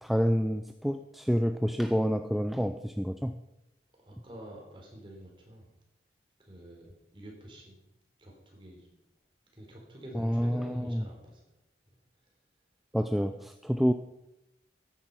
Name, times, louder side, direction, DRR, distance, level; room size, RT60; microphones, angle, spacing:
voice 1, 0.0-3.4 10.1-11.0 12.9-13.9, equal, ahead, 8 dB, 0.4 m, -28 dB
voice 2, 4.0-5.7 6.4-7.8 8.2-8.9 9.5-11.4, equal, 30° right, 0 dB, 4.1 m, -48 dB
14.0 x 10.5 x 5.6 m, 0.88 s
head